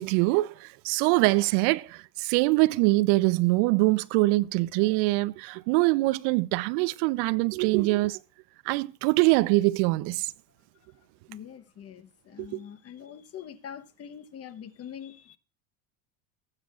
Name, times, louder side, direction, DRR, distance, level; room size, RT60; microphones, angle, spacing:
voice 1, 0.0-8.2 8.7-10.3 12.4-12.5, right 22 dB, 60° right, 0.6 m, -24 dB
voice 2, 11.3-15.4, left 8 dB, 35° left, 1.0 m, -44 dB
19.0 x 8.8 x 2.4 m
supercardioid pair, 110°, 44 cm